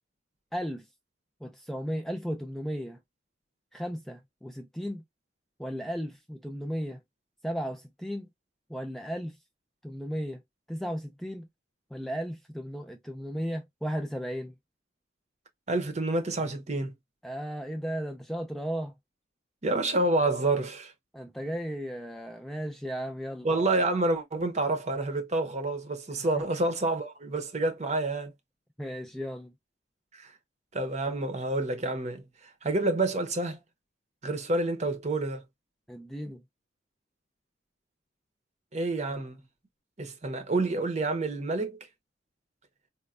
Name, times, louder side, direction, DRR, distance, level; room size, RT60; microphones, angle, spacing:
voice 1, 0.5-0.8 1.4-3.0 3.7-5.0 5.6-7.0 7.4-8.3 8.7-9.4 9.8-10.4 10.7-11.5 11.9-14.5 17.2-18.9 21.1-23.5 26.2-26.4 28.8-29.5 35.9-36.4, equal, ahead, 0.4 m, -35 dB
voice 2, 15.7-16.9 19.6-20.9 23.4-28.3 30.1-30.3 30.7-32.2 32.6-33.6 34.2-35.4 38.7-39.4 40.0-41.8, right 2 dB, 40° right, 0.7 m, -28 dB
4.2 x 2.2 x 2.3 m
head